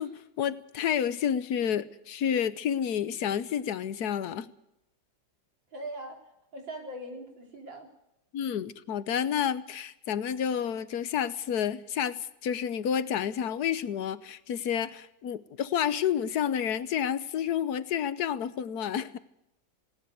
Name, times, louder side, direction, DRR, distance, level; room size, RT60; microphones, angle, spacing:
voice 1, 0.0-4.5 8.3-19.2, left 8 dB, 60° left, 15 dB, 1.4 m, -30 dB
voice 2, 5.7-6.2 6.5-7.9, right 1 dB, 80° right, 2 dB, 4.6 m, -40 dB
18.5 x 18.5 x 8.1 m, 0.82 s
omnidirectional pair, 2.0 m